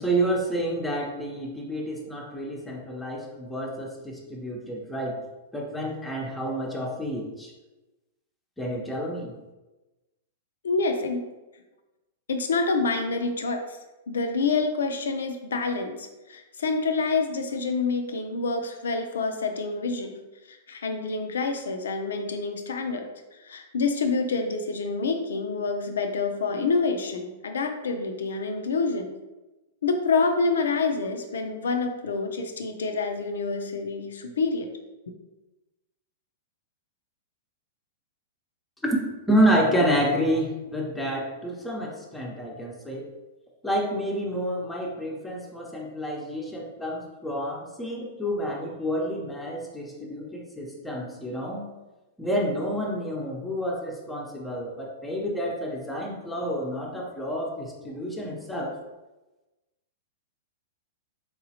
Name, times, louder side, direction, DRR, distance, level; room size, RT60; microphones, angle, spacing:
voice 1, 0.0-5.2 5.5-7.5 8.6-9.3 38.9-39.0 39.3-43.1 43.6-51.7 52.2-58.7, equal, 5° left, -1 dB, 0.6 m, -29 dB
voice 2, 10.6-11.2 12.3-13.8 14.1-20.2 20.5-29.1 29.8-34.7, left 4 dB, 90° left, 6 dB, 0.5 m, -27 dB
3.8 x 2.9 x 2.8 m, 1.1 s
hypercardioid pair, 125°, 0 cm